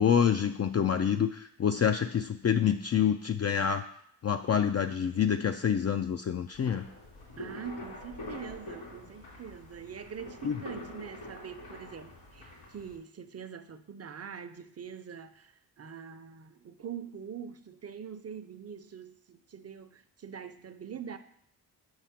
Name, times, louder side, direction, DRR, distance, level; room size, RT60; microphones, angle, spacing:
voice 1, 0.0-3.8 4.2-6.8 10.4-10.6, left 8 dB, 40° left, 6 dB, 0.4 m, -27 dB
sound 1, 6.5-13.0, left 2 dB, 80° left, 3.1 m, -45 dB
voice 2, 7.4-21.2, right 7 dB, 35° right, 10 dB, 0.7 m, -44 dB
4.9 x 4.8 x 5.8 m, 0.70 s
cardioid pair, 50°, 42 cm